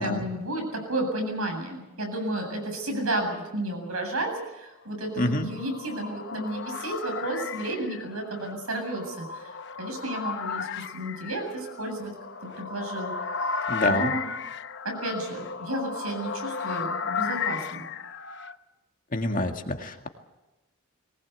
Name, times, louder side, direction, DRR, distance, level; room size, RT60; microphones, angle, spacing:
voice 1, 0.0-9.5 9.8-10.7 10.9-12.1 12.5-13.1 13.9-14.3 14.8-17.8, right 1 dB, 80° right, 3 dB, 8.0 m, -32 dB
sound 1, 5.1-18.6, left 5 dB, 55° left, 1.0 m, -34 dB
voice 2, 5.2-5.5 13.7-14.1 19.1-20.1, left 1 dB, 40° left, 4 dB, 2.0 m, -27 dB
22.5 x 19.5 x 8.4 m, 1.0 s
head